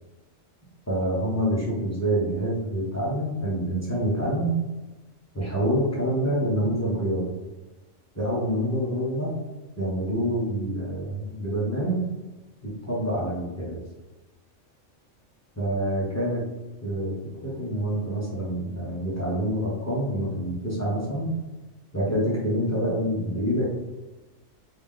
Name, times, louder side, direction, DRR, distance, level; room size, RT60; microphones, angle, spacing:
voice 1, 0.9-4.5 5.3-7.3 8.1-9.3 9.8-12.0 12.6-13.8 15.6-16.4 16.8-17.1 17.4-21.3 21.9-23.7, right 1 dB, 15° left, -7 dB, 0.8 m, -26 dB
3.2 x 2.7 x 3.6 m, 1.1 s
omnidirectional pair, 1.4 m